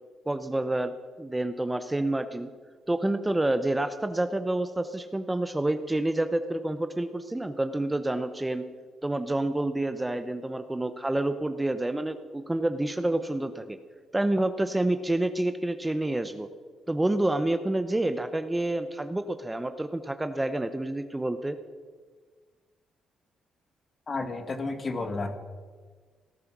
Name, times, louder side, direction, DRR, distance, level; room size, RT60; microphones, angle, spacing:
voice 1, 0.3-2.5 2.9-8.6 9.0-13.8 14.1-16.5 16.9-21.6, right 1 dB, 10° right, 10 dB, 0.9 m, -28 dB
voice 2, 24.1-25.4, left 3 dB, 35° left, 8 dB, 1.9 m, -32 dB
18.5 x 12.0 x 6.1 m, 1.5 s
cardioid pair, 90°, 0 cm